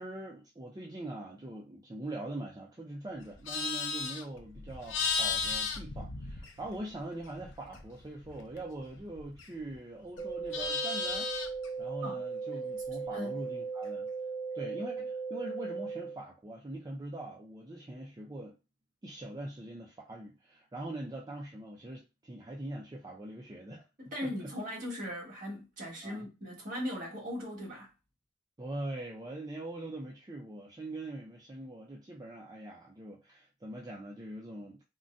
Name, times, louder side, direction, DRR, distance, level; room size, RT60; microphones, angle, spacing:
voice 1, 0.0-11.3 11.8-14.1 14.5-18.6 19.0-23.8 24.2-24.3 26.0-26.3 28.6-34.8, right 1 dB, 20° right, 0.5 m, -42 dB
Livestock farm animals working animals, 3.2-6.9 7.2-9.8 10.1-11.7, left 5 dB, 75° left, 0.6 m, -35 dB
sound 1, 10.2-16.2, right 5 dB, 35° left, 0.7 m, -37 dB
voice 2, 24.0-27.9, left 1 dB, 50° right, 1.4 m, -39 dB
3.8 x 2.1 x 2.5 m
head